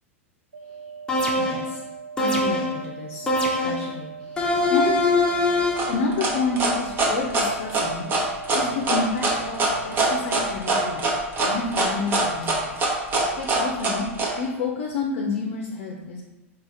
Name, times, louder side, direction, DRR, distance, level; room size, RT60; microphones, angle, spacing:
sound 1, 0.5-10.5, right 5 dB, 85° right, 0.5 m, -40 dB
sound 2, 1.1-1.7 2.2-2.8 3.3-3.9 4.4-6.0, left 2 dB, 10° left, 0.7 m, -22 dB
voice 1, 1.4-1.8 2.2-3.3 3.6-5.0 5.9-8.0 8.5-11.0 11.4-12.7 13.0-14.0 14.4-16.2, left 4 dB, 55° left, 0 dB, 0.6 m, -29 dB
sound 3, 5.8-14.3, right 2 dB, 30° right, 0.9 m, -23 dB
4.7 x 2.4 x 4.0 m, 1.1 s
figure-of-eight pair, 85°, 7 cm